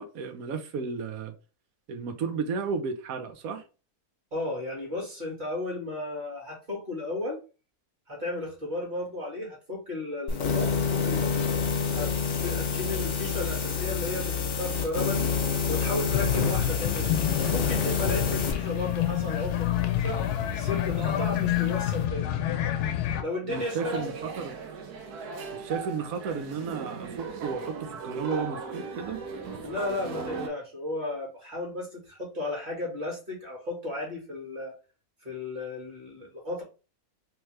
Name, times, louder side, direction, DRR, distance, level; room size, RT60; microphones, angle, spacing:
voice 1, 0.0-1.3 1.9-3.6 23.5-24.5 25.5-29.2, right 5 dB, 70° right, 1.1 m, -33 dB
voice 2, 4.3-7.4 8.1-11.5 11.9-15.3 15.7-20.2 20.5-22.3 23.2-24.1 29.6-34.7 35.2-36.6, left 2 dB, 30° right, 1.9 m, -34 dB
sound 1, 10.3-18.6, left 5 dB, 55° left, 1.0 m, -27 dB
sound 2, 16.1-23.2, left 11 dB, 90° left, 1.1 m, -28 dB
sound 3, 23.5-30.5, right 5 dB, 85° right, 1.3 m, -38 dB
3.5 x 3.0 x 3.2 m
omnidirectional pair, 1.6 m